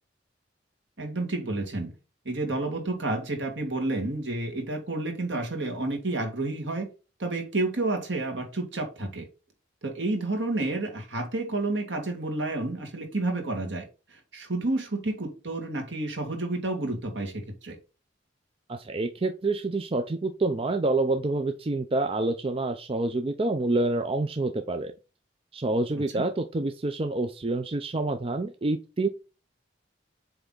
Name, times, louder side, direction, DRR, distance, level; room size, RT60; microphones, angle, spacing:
voice 1, 1.0-1.9 2.3-6.9 7.2-9.3 9.8-13.9 14.3-17.8 26.1-26.3, right 2 dB, 70° right, 3 dB, 2.1 m, -30 dB
voice 2, 18.7-24.9 25.5-29.1, right 2 dB, 30° right, 7 dB, 0.5 m, -27 dB
8.0 x 3.4 x 3.9 m, 0.31 s
head